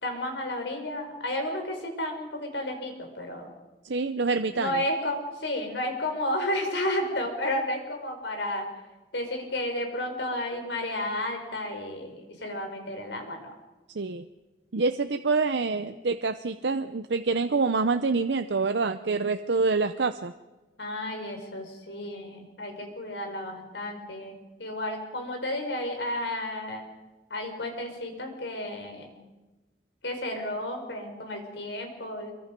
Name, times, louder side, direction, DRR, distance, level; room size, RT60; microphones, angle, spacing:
voice 1, 0.0-3.5 4.5-8.7 9.1-13.5 15.7-15.8 20.8-26.8 27.3-29.2 30.0-32.3, left 1 dB, 85° left, 4 dB, 5.0 m, -32 dB
voice 2, 3.8-4.8 13.9-14.3 14.7-20.3, right 4 dB, 80° right, 9 dB, 0.7 m, -26 dB
26.0 x 23.5 x 5.3 m, 1.1 s
head